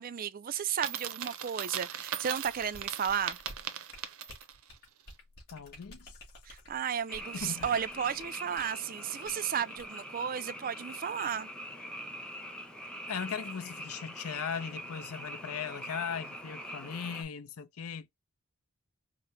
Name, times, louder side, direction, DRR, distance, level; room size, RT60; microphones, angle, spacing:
voice 1, 0.0-3.4 6.4-11.5, right 8 dB, 40° right, 0.4 m, -33 dB
Coin (dropping), 0.7-4.6, right 9 dB, 75° right, 0.7 m, -39 dB
sound 1, 2.4-8.8 9.3-9.4 9.8-10.0, left 1 dB, 45° left, 2.2 m, -51 dB
voice 2, 5.5-6.1 7.3-7.8 13.1-18.1, left 7 dB, 75° left, 0.6 m, -38 dB
Frog, 7.1-17.2, equal, 5° left, 0.7 m, -44 dB
4.9 x 2.1 x 2.7 m
head